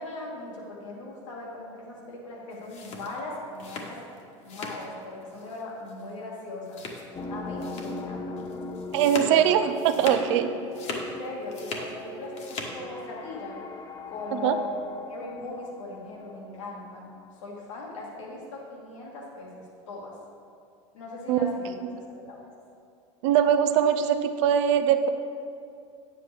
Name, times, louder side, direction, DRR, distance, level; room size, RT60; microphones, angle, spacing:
voice 1, 0.0-4.0 4.4-6.8 7.3-8.4 9.2-9.4 10.8-13.6 14.1-14.7 15.1-20.2 20.9-21.7 22.1-22.5, left 2 dB, 85° left, -3 dB, 2.1 m, -39 dB
sound 1, 2.5-4.9 5.2-5.6 5.9-6.0 6.7-7.2 7.6-8.0 8.4-10.4 10.6-11.9 12.2-12.8, left 3 dB, 45° left, 1.4 m, -38 dB
sound 2, 7.1-17.0, left 2 dB, 25° left, 0.6 m, -39 dB
voice 2, 8.9-10.5 14.3-14.5 21.3-21.5 21.9-22.0 23.2-25.1, right 9 dB, 70° right, 9 dB, 0.6 m, -22 dB
9.0 x 7.8 x 3.4 m, 2.4 s
hypercardioid pair, 95°, 16 cm